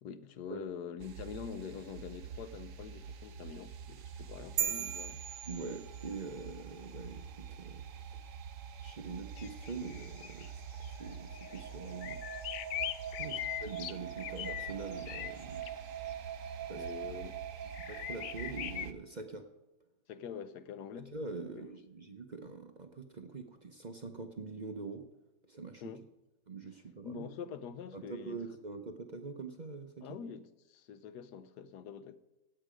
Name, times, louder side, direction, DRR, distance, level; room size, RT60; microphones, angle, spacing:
voice 1, 0.0-5.2 13.2-13.4 16.8-17.4 20.1-21.1 21.4-21.7 25.8-26.0 27.0-28.4 30.0-32.1, left 7 dB, 90° left, 1.4 m, -45 dB
sound 1, 1.0-18.9, right 8 dB, 60° right, 1.0 m, -45 dB
sound 2, 4.6-6.3, right 9 dB, 75° right, 1.4 m, -37 dB
voice 2, 5.5-7.8 8.8-10.6 10.9-12.2 13.2-15.7 16.7-17.1 17.8-19.5 21.1-25.0 25.5-25.9 26.5-27.3 27.9-30.2, right 4 dB, 40° right, 0.7 m, -44 dB
sound 3, 9.4-10.5 10.8-10.9 11.4-11.6 11.9-15.7 16.9-17.0 17.7-18.9, left 12 dB, 70° left, 0.9 m, -41 dB
16.5 x 8.1 x 5.1 m
omnidirectional pair, 1.7 m